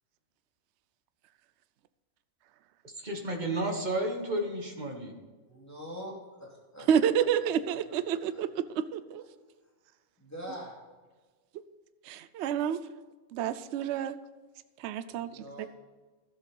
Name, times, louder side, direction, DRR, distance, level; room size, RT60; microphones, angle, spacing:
voice 1, 3.0-5.1, right 1 dB, 35° right, 3 dB, 1.5 m, -32 dB
voice 2, 5.5-6.1 6.4-6.9 8.3-8.4 10.2-10.7 15.1-15.7, equal, 10° left, -4 dB, 2.6 m, -43 dB
voice 3, 6.9-9.2 12.0-12.8 13.3-14.2 14.8-15.7, right 8 dB, 65° right, 13 dB, 0.8 m, -29 dB
13.5 x 7.8 x 5.3 m, 1.4 s
omnidirectional pair, 1.4 m